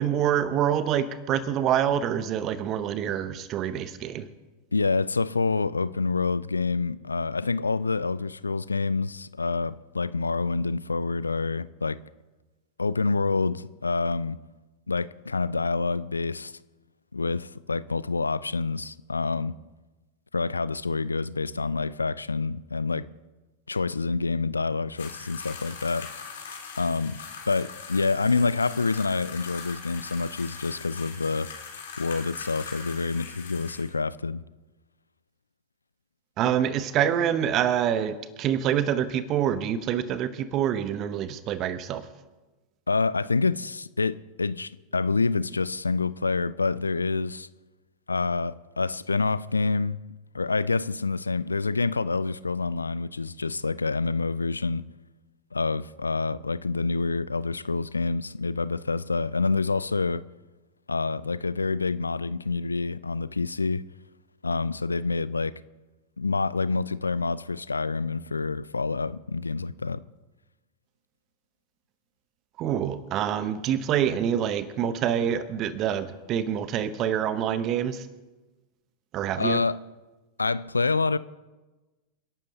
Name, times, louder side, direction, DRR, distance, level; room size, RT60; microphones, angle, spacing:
voice 1, 0.0-4.3 36.4-42.0 72.6-78.0 79.1-79.6, right 9 dB, 35° right, 0.8 m, -26 dB
voice 2, 4.7-12.0 12.8-14.4 14.9-16.5 17.1-19.5 20.3-23.1 23.7-26.1 26.8-27.2 27.5-31.5 32.0-34.4 42.9-47.5 48.1-50.0 50.3-54.8 55.5-60.2 60.9-63.8 64.4-65.5 66.2-70.0 79.4-79.8 80.4-81.2, left 4 dB, 80° left, 0.3 m, -27 dB
sound 1, 25.0-33.9, left 6 dB, 60° left, 3.4 m, -41 dB
29.0 x 11.5 x 2.8 m
figure-of-eight pair, 90°, 0 cm